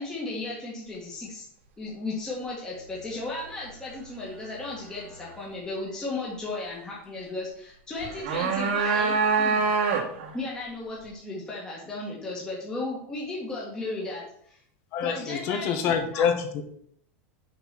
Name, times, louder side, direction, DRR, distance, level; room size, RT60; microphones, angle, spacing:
voice 1, 0.0-1.5 1.8-9.7 10.3-14.6 15.0-16.3, left 2 dB, 10° left, -5 dB, 1.7 m, -35 dB
sound 1, 8.0-10.3, right 5 dB, 70° right, 1.9 m, -24 dB
voice 2, 14.9-16.6, left 7 dB, 40° left, 7 dB, 1.3 m, -26 dB
6.9 x 5.9 x 6.0 m, 0.66 s
supercardioid pair, 165°, 7 cm